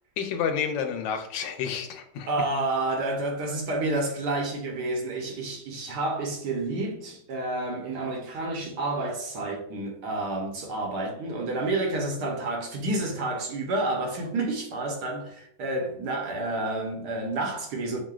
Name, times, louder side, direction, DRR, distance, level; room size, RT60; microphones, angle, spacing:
voice 1, 0.2-2.3, left 7 dB, 90° left, 1.3 m, -30 dB
voice 2, 2.3-18.0, right 2 dB, 70° right, 1.3 m, -29 dB
6.4 x 2.2 x 2.3 m
omnidirectional pair, 2.0 m